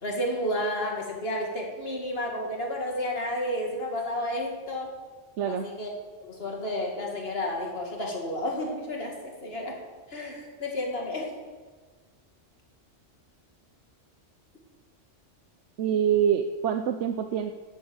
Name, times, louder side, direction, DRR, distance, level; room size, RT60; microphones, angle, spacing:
voice 1, 0.0-4.9 5.5-5.9 6.2-9.8 10.1-11.3, left 1 dB, 55° left, 0 dB, 2.5 m, -31 dB
voice 2, 15.8-17.5, right 8 dB, 75° right, 7 dB, 1.0 m, -25 dB
12.0 x 7.9 x 8.0 m, 1.4 s
omnidirectional pair, 1.2 m